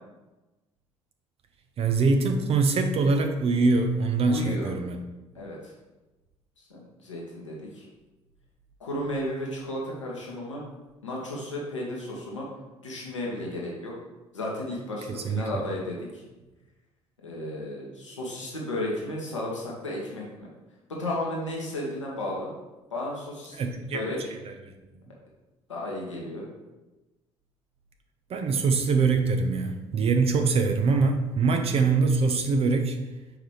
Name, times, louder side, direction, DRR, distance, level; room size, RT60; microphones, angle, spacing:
voice 1, 1.8-5.0 15.1-15.4 23.5-24.0 24.4-24.5 28.3-33.0, right 4 dB, 40° right, 5 dB, 0.7 m, -23 dB
voice 2, 4.2-4.7 5.3-5.7 6.7-7.9 8.8-10.6 11.0-12.5 12.8-14.0 14.3-16.2 17.2-20.5 20.9-22.5 22.9-24.2 25.7-26.5, left 1 dB, 85° left, -3 dB, 1.2 m, -33 dB
6.3 x 4.9 x 3.3 m, 1.1 s
figure-of-eight pair, 50°, 15 cm